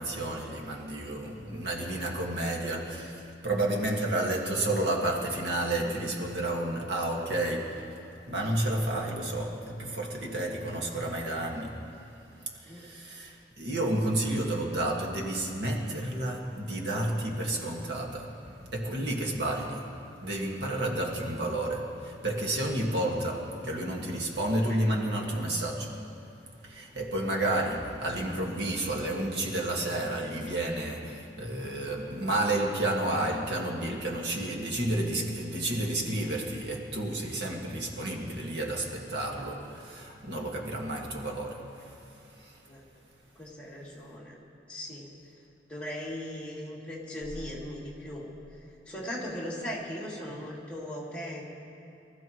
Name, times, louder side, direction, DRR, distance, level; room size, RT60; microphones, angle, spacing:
voice 1, 0.0-7.9 8.3-11.8 12.6-19.9 20.2-26.0 26.6-42.0 42.4-42.6, right 1 dB, 70° right, -1 dB, 1.9 m, -31 dB
voice 2, 43.4-44.3 44.7-45.1 45.7-48.3 48.9-51.4, equal, 5° left, -7 dB, 2.7 m, -38 dB
24.5 x 14.5 x 3.1 m, 2.8 s
head